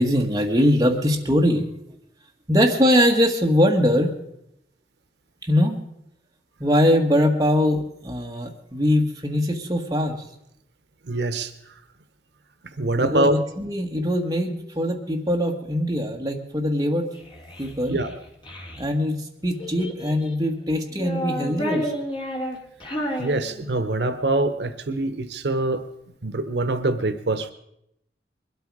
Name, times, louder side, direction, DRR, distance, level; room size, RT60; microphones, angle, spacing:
voice 1, 0.0-1.7 2.5-4.1 5.4-5.8 6.6-10.2 13.0-17.1 17.6-18.0 18.8-21.9, equal, 20° right, 1 dB, 1.6 m, -22 dB
voice 2, 11.1-11.5 12.8-13.4 17.9-18.1 23.0-25.9 26.2-27.5, right 2 dB, 75° right, 11 dB, 0.9 m, -24 dB
Child speech kid speaking, 17.1-18.8 19.6-20.4 20.9-24.0, equal, 25° left, 2.4 m, -31 dB
21.5 x 12.5 x 4.8 m, 0.79 s
head